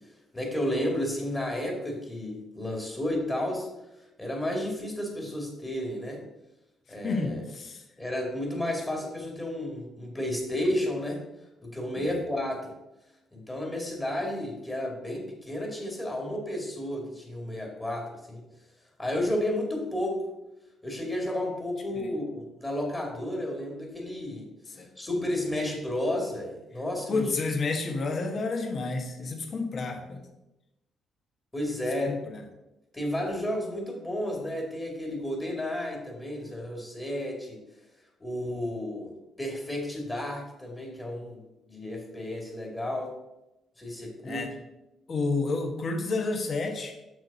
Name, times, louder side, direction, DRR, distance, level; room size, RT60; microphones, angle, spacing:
voice 1, 0.3-3.7 4.0-6.2 6.9-7.4 8.0-11.2 11.6-12.7 13.3-18.4 19.0-20.2 20.8-27.3 31.5-32.1 32.9-37.6 38.2-39.1 39.4-41.4 41.7-43.1 43.8-44.5, left 1 dB, 20° left, 0 dB, 2.2 m, -32 dB
voice 2, 7.0-7.8 12.0-12.2 22.0-22.1 24.8-24.9 27.1-30.2 32.1-32.4 44.2-44.5 45.1-47.0, left 3 dB, 50° left, 4 dB, 1.3 m, -30 dB
6.3 x 6.3 x 4.1 m, 0.95 s
cardioid pair, 90°, 0 cm